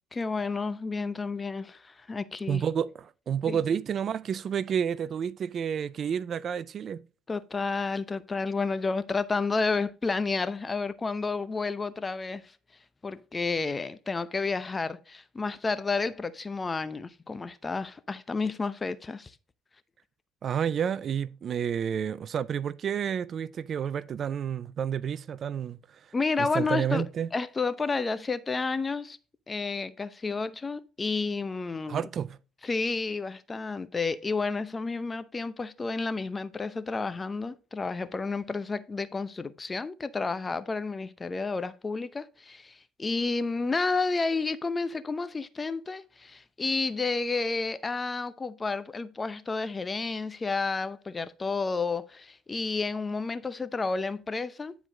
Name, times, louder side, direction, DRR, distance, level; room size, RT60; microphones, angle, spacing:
voice 1, 0.1-2.6 3.5-3.6 7.3-12.6 13.0-19.4 26.1-29.2 29.5-32.1 32.6-54.7, left 4 dB, 25° left, 0.7 m, -31 dB
voice 2, 2.5-7.1 20.4-27.3 31.9-32.4, right 8 dB, 50° right, 0.4 m, -30 dB
9.9 x 4.6 x 3.8 m
supercardioid pair, 80°, 0 cm